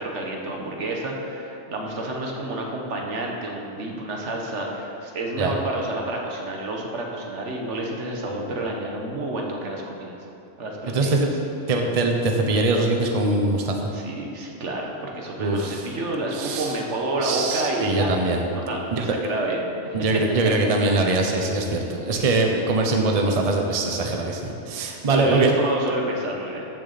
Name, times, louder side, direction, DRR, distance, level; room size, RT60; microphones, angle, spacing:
voice 1, 0.0-10.1 10.6-11.2 13.9-18.2 18.5-20.0 25.0-26.7, right 2 dB, 75° right, 0 dB, 1.5 m, -29 dB
voice 2, 10.8-11.3 11.7-13.7 15.4-15.9 16.3-16.7 17.2-18.4 18.9-19.2 19.9-25.5, right 2 dB, 35° right, 2 dB, 0.8 m, -22 dB
13.5 x 6.5 x 4.1 m, 2.8 s
omnidirectional pair, 1.2 m